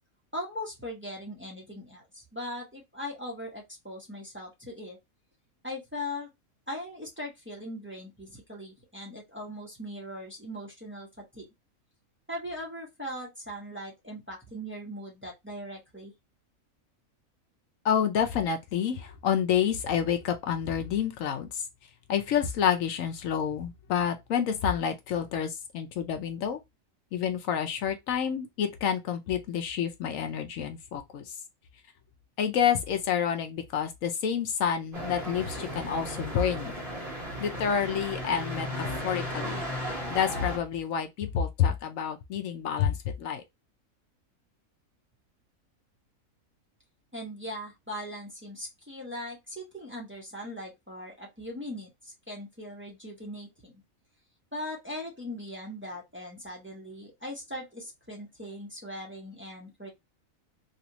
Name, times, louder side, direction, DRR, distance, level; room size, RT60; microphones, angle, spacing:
voice 1, 0.3-5.0 5.6-6.3 6.7-11.5 12.3-16.1 47.1-53.7 54.5-59.9, left 1 dB, 10° right, 1.0 m, -40 dB
voice 2, 17.8-21.6 22.1-26.6 27.1-31.3 32.4-36.7 37.4-39.6 40.1-43.4, left 8 dB, 75° left, 1.0 m, -28 dB
sound 1, 34.9-40.6, equal, 40° right, 1.5 m, -35 dB
3.3 x 2.7 x 2.9 m
omnidirectional pair, 1.4 m